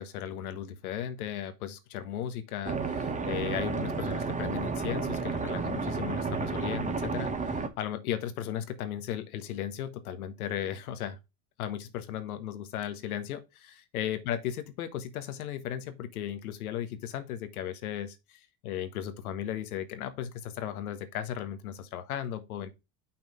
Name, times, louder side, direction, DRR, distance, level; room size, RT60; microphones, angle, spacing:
voice 1, 0.0-11.2 11.6-22.7, left 10 dB, 85° left, 1.3 m, -36 dB
sound 1, 2.6-7.7, right 4 dB, 15° right, 1.1 m, -32 dB
5.9 x 4.4 x 5.4 m
supercardioid pair, 100°, 43 cm